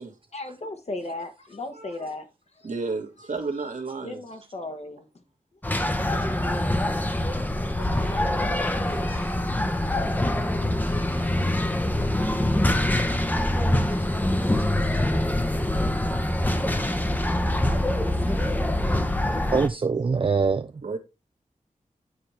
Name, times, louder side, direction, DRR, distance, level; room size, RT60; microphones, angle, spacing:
voice 1, 0.3-2.7 4.0-5.2 7.7-8.7, left 2 dB, 50° left, 1.2 m, -37 dB
voice 2, 1.7-2.1 2.6-4.2 19.3-19.5 20.8-21.0, right 4 dB, 65° right, 1.5 m, -32 dB
sound 1, 5.6-19.7, left 1 dB, 10° left, 0.8 m, -24 dB
voice 3, 10.8-11.7 19.5-20.7, right 4 dB, 40° right, 0.4 m, -26 dB
9.6 x 4.4 x 3.2 m
wide cardioid pair, 95°, 14 cm